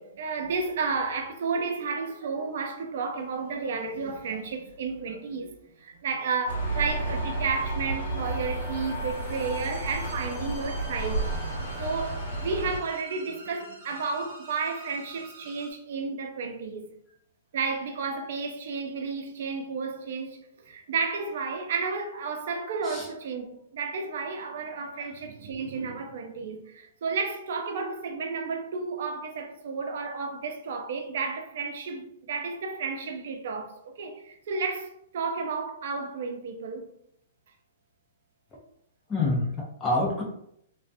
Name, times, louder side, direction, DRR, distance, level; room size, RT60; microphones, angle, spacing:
voice 1, 0.0-11.3 11.8-16.9 17.5-36.9, right 4 dB, 65° right, 0.5 m, -32 dB
sound 1, 6.5-12.8, right 2 dB, 75° left, 1.1 m, -31 dB
sound 2, 8.2-15.7, right 3 dB, 40° right, 0.8 m, -48 dB
voice 2, 39.1-40.2, left 2 dB, 20° left, 0.6 m, -27 dB
2.4 x 2.1 x 2.6 m
hypercardioid pair, 130°, 0 cm